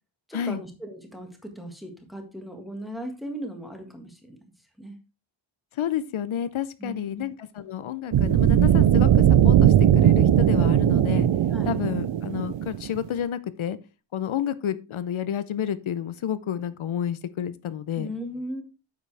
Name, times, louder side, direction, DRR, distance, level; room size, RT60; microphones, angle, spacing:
voice 1, 0.3-4.4 4.8-5.0 6.8-7.2 11.5-11.8 18.0-18.6, equal, ahead, 3 dB, 1.8 m, -37 dB
voice 2, 5.7-11.3 11.7-13.8 14.1-18.1, left 9 dB, 80° left, 14 dB, 0.8 m, -30 dB
Power Star Rumble, 8.1-13.1, right 11 dB, 65° right, 0.6 m, -19 dB
9.2 x 7.4 x 3.4 m, 0.31 s
wide cardioid pair, 170°, 48 cm